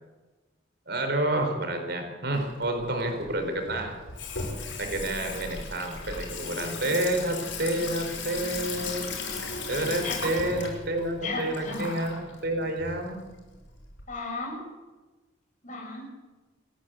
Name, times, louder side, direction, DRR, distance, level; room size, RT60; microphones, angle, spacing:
voice 1, 0.9-4.0 4.6-9.1 9.7-12.2 12.4-13.2, right 1 dB, 60° right, 5 dB, 4.4 m, -29 dB
Water tap faucet / Sink (filling or washing), 2.3-14.0, left 3 dB, 90° left, 6.5 m, -37 dB
voice 2, 10.0-10.4 11.2-11.9 14.1-14.6 15.6-16.1, left 3 dB, 45° left, 0 dB, 7.3 m, -35 dB
28.0 x 11.0 x 8.4 m, 1.2 s
head